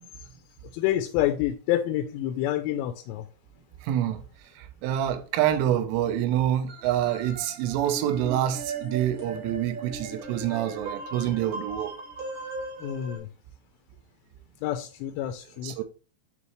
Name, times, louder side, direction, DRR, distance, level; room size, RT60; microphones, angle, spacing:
voice 1, 0.7-3.3 12.8-13.3 14.6-15.8, left 12 dB, 85° left, 2.7 m, -28 dB
voice 2, 3.8-4.2 4.6-11.9 15.6-15.8, right 11 dB, 85° right, 3.2 m, -27 dB
sound 1, 6.7-13.2, right 3 dB, 50° right, 2.0 m, -38 dB
9.5 x 3.2 x 3.1 m
omnidirectional pair, 5.7 m